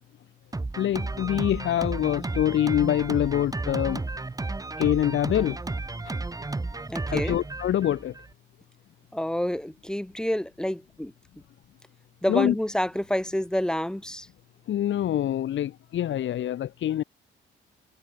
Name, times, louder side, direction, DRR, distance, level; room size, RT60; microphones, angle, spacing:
Drum kit, 0.5-8.3, right 3 dB, 15° right, 2.3 m, -33 dB
voice 1, 0.8-4.0 4.8-5.6 6.0-6.1 7.1-8.1 12.3-12.5 14.7-17.0, left 11 dB, 70° left, 4.7 m, -25 dB
voice 2, 6.9-7.4 9.1-11.1 12.2-14.3, left 1 dB, 5° left, 3.6 m, -28 dB
cardioid pair, 90°, 20 cm